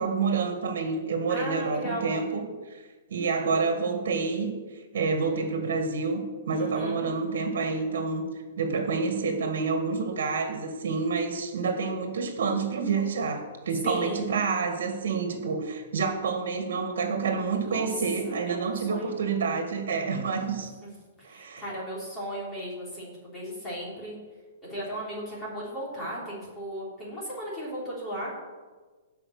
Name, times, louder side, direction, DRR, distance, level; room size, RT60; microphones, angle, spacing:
voice 1, 0.0-2.4 2.7-2.8 3.1-4.5 4.9-8.2 8.6-20.7 21.2-21.6, right 4 dB, 70° right, 5 dB, 1.9 m, -28 dB
voice 2, 1.3-2.1 6.5-7.0 13.8-14.3 17.6-17.9 18.2-19.1 21.2-24.2 24.7-28.3, equal, 10° left, -6 dB, 3.7 m, -36 dB
16.5 x 5.8 x 6.6 m, 1.4 s
hypercardioid pair, 175°, 0 cm